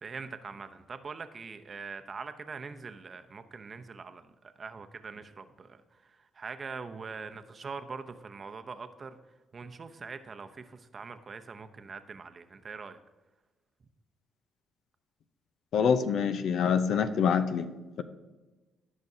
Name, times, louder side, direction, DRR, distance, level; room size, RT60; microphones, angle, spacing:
voice 1, 0.0-4.2 4.6-5.8 6.4-9.1 9.5-13.0, right 4 dB, 40° right, 8 dB, 0.7 m, -42 dB
voice 2, 15.7-17.7, left 6 dB, 70° left, 11 dB, 0.7 m, -25 dB
17.5 x 6.0 x 2.8 m, 1.2 s
cardioid pair, 90°, 0 cm